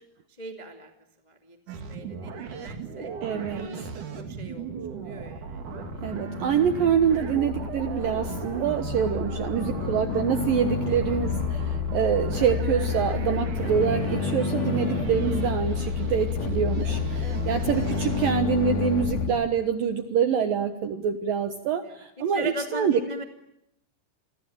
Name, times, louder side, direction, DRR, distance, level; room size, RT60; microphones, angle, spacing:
voice 1, 0.4-0.9 1.2-3.1 3.6-6.0 10.9-11.2 14.4-14.9 17.2-17.8 21.8-23.2, equal, 20° left, 4 dB, 1.0 m, -40 dB
sound 1, 1.7-18.3, right 6 dB, 45° right, 3.4 m, -37 dB
voice 2, 3.2-3.7 6.0-23.0, right 8 dB, 70° right, 8 dB, 2.2 m, -26 dB
sound 2, 5.4-19.3, left 5 dB, 55° left, 4.7 m, -29 dB
29.0 x 22.5 x 8.9 m, 0.78 s
omnidirectional pair, 5.6 m